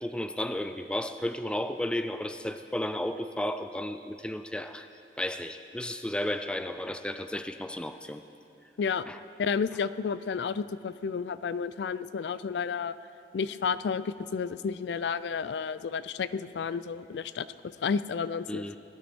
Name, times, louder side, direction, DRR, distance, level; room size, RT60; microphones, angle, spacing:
voice 1, 0.0-4.9 5.2-8.2 9.1-9.2 18.5-18.8, left 1 dB, 5° left, 9 dB, 0.3 m, -33 dB
voice 2, 9.4-12.9 13.3-17.5 17.8-18.7, left 6 dB, 80° left, 15 dB, 0.4 m, -31 dB
18.0 x 12.5 x 4.5 m, 2.9 s
head